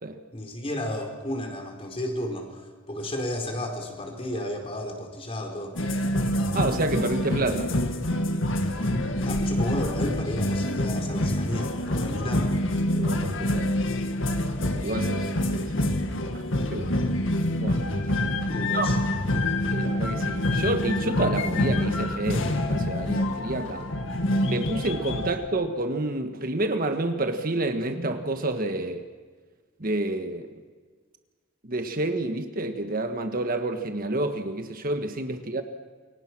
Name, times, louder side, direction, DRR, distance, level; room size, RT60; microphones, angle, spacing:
voice 1, 0.3-2.6 2.9-5.8 9.2-12.5 18.5-19.0 19.3-19.5, left 1 dB, 30° left, 3 dB, 4.5 m, -32 dB
sound 1, 5.7-25.3, left 1 dB, 65° left, 2.0 m, -26 dB
voice 2, 6.5-7.7 12.9-13.7 14.8-15.7 16.7-17.1 17.6-17.8 18.7-18.9 19.7-23.9 24.4-29.0 29.8-30.5 31.6-35.6, right 2 dB, 45° right, 7 dB, 1.5 m, -29 dB
28.5 x 23.5 x 6.1 m, 1.5 s
head